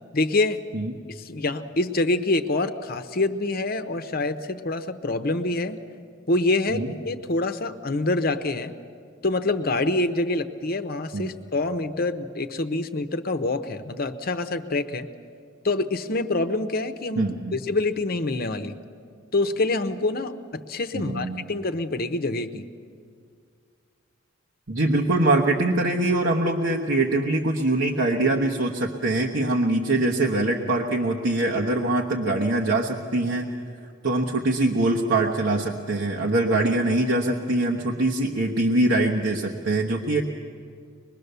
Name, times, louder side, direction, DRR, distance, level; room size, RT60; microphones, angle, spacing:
voice 1, 0.1-0.6 1.1-5.8 6.3-8.7 9.2-15.1 15.6-18.7 19.3-22.7, left 2 dB, 50° left, 8 dB, 0.8 m, -26 dB
voice 2, 17.2-17.6 20.9-21.5 24.7-33.5 34.0-40.2, right 2 dB, 70° right, 0 dB, 1.2 m, -23 dB
24.0 x 21.0 x 6.8 m, 2.2 s
head